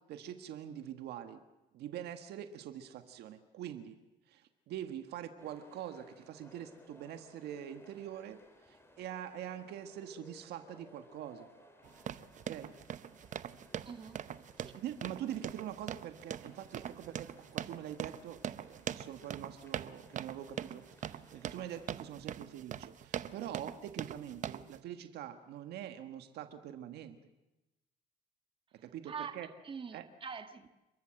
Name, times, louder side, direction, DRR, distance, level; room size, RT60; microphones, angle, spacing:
voice 1, 0.1-1.4 1.7-4.0 4.3-8.4 8.7-11.5 12.5-12.7 14.7-27.2 28.8-29.5 29.9-30.0, right 10 dB, 75° right, 8 dB, 1.6 m, -44 dB
sound 1, 5.4-22.0, left 1 dB, 15° left, 3.9 m, -61 dB
sound 2, 11.8-24.8, right 9 dB, 50° right, 0.8 m, -42 dB
voice 2, 13.8-14.2 14.6-14.7 29.0-30.7, right 6 dB, 30° right, 8 dB, 1.6 m, -44 dB
30.0 x 14.0 x 7.7 m, 0.99 s
cardioid pair, 110°, 17 cm